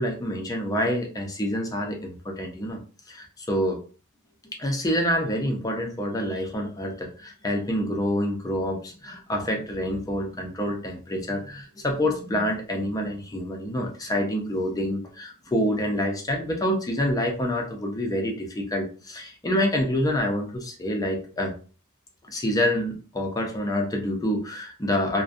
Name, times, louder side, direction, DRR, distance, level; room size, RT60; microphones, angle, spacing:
voice 1, 0.0-2.8 3.1-3.8 4.6-21.5 22.3-25.2, equal, 15° left, 2 dB, 0.4 m, -27 dB
2.5 x 2.1 x 2.4 m, 0.38 s
head